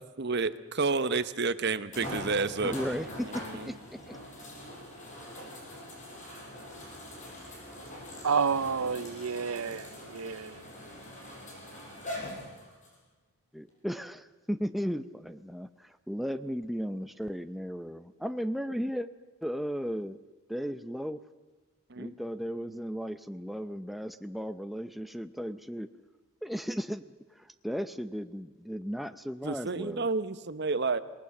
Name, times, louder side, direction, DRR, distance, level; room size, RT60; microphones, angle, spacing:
voice 1, 0.2-2.7 3.2-3.7 21.9-22.1 22.7-22.8 29.4-31.0, right 4 dB, 50° right, 1.0 m, -30 dB
sound 1, 0.8-0.9 1.9-13.0 13.7-13.8 17.2-17.3, left 1 dB, 35° left, 6.6 m, -43 dB
voice 2, 2.6-4.2 13.5-19.1 19.4-20.2 20.5-21.2 22.0-25.9 26.4-30.1, equal, ahead, 0.6 m, -35 dB
voice 3, 8.2-10.6, right 6 dB, 80° right, 0.6 m, -30 dB
28.0 x 19.5 x 7.2 m
head